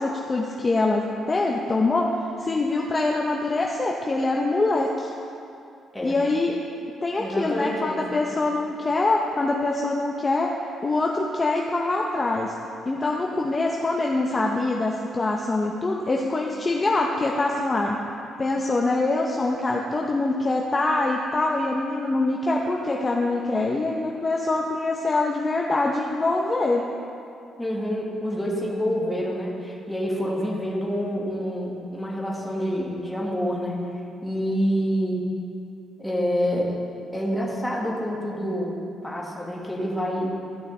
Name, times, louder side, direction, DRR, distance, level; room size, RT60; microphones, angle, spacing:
voice 1, 0.0-2.1 2.4-5.1 6.0-6.6 7.0-10.5 10.8-12.5 12.9-18.0 18.4-26.8, left 2 dB, 25° left, -1 dB, 0.6 m, -24 dB
voice 2, 7.2-8.3 27.6-33.8 34.2-35.3 36.0-36.8 37.1-40.4, equal, 5° left, -3 dB, 1.6 m, -27 dB
14.5 x 6.3 x 3.2 m, 2.6 s
cardioid pair, 105°, 0 cm